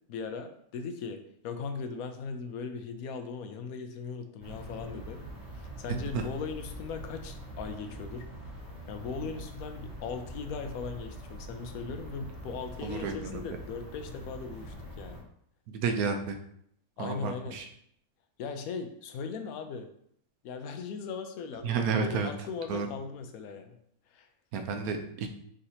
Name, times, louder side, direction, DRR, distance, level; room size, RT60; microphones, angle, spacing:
voice 1, 0.1-5.2 5.5-8.3 8.9-15.2 17.0-17.6 18.4-19.9 20.4-23.7 24.1-24.3, left 5 dB, 80° left, 7 dB, 1.0 m, -39 dB
sound 1, 4.4-15.2, right 1 dB, 55° right, 1.6 m, -44 dB
voice 2, 12.8-13.3 15.7-16.4 17.0-17.6 21.6-22.3 22.7-22.9 24.5-25.3, right 5 dB, 85° right, 5 dB, 1.1 m, -31 dB
4.3 x 3.8 x 2.7 m, 0.68 s
omnidirectional pair, 1.5 m